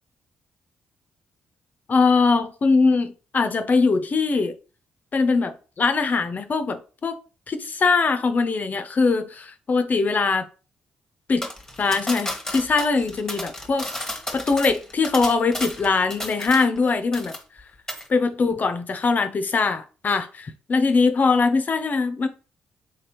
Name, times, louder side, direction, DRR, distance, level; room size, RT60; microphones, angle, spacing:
voice 1, 1.9-4.5 5.1-7.2 7.5-10.5 11.3-11.5 11.8-13.9 14.3-17.3 18.1-22.3, left 4 dB, 45° left, 0.6 m, -22 dB
sound 1, 11.4-16.9 17.1-17.6 17.9-18.1, left 1 dB, 10° left, 1.1 m, -33 dB
3.4 x 3.3 x 3.0 m
supercardioid pair, 55°, 4 cm